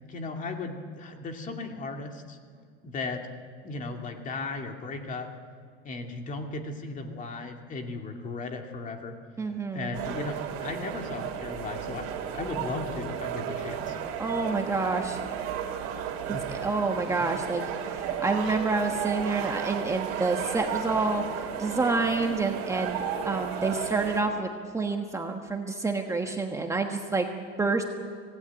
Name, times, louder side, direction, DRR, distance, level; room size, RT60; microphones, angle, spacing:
voice 1, 0.1-2.4 2.8-3.3 3.6-5.3 5.8-9.2 9.7-12.1 12.3-14.0 16.3-16.5 17.2-17.3, left 3 dB, 25° left, 4 dB, 2.3 m, -36 dB
voice 2, 9.4-10.0 14.2-15.2 16.3-17.6 17.9-21.2 21.6-27.8, right 3 dB, 10° right, 3 dB, 1.3 m, -28 dB
sound 1, 9.9-24.2, right 8 dB, 55° right, 4.1 m, -33 dB
25.5 x 18.0 x 9.0 m, 2.2 s
cardioid pair, 155°, 29 cm